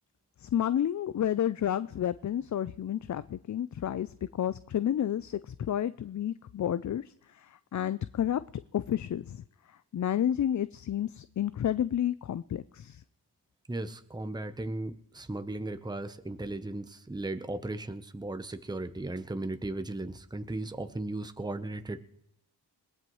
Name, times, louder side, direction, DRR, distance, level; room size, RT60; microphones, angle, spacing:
voice 1, 0.5-4.1 4.4-7.0 7.7-8.4 8.7-9.4 9.9-13.0, left 10 dB, 45° left, 15 dB, 0.4 m, -30 dB
voice 2, 13.7-22.0, right 2 dB, 10° right, 9 dB, 0.8 m, -36 dB
21.5 x 16.5 x 3.1 m, 0.80 s
cardioid pair, 55°, 42 cm